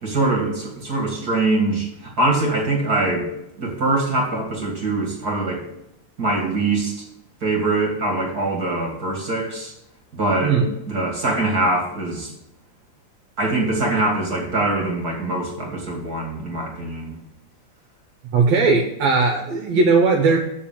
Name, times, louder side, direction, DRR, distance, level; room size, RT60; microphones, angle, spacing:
voice 1, 0.0-3.3 3.6-5.6 6.2-7.0 7.4-9.7 10.1-10.6 10.9-12.3 13.4-17.2, right 2 dB, 35° right, -1 dB, 2.0 m, -23 dB
voice 2, 18.3-20.4, right 4 dB, 65° right, 2 dB, 1.9 m, -18 dB
7.5 x 5.2 x 7.1 m, 0.83 s
omnidirectional pair, 3.7 m